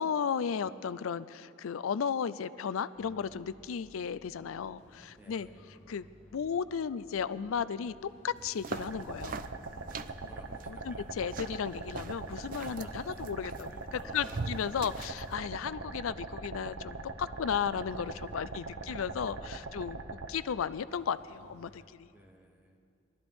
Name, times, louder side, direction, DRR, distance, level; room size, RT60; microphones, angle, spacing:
voice 1, 0.0-5.5 5.9-6.1 6.3-7.9 8.2-9.5 10.2-10.3 10.7-20.0 20.3-22.1, left 7 dB, 85° left, 15 dB, 0.4 m, -34 dB
sound 1, 2.9-21.8, equal, 30° left, 1.6 m, -59 dB
voice 2, 5.1-5.5 10.2-11.1 12.5-13.3 13.6-14.5 18.3-19.9 21.6-22.8, right 1 dB, 10° right, 2 dB, 0.8 m, -56 dB
sound 2, 8.4-15.3, right 4 dB, 40° right, 0.3 m, -43 dB
sound 3, 8.7-20.3, right 3 dB, 80° right, 0.9 m, -42 dB
21.5 x 13.0 x 3.5 m, 2.4 s
head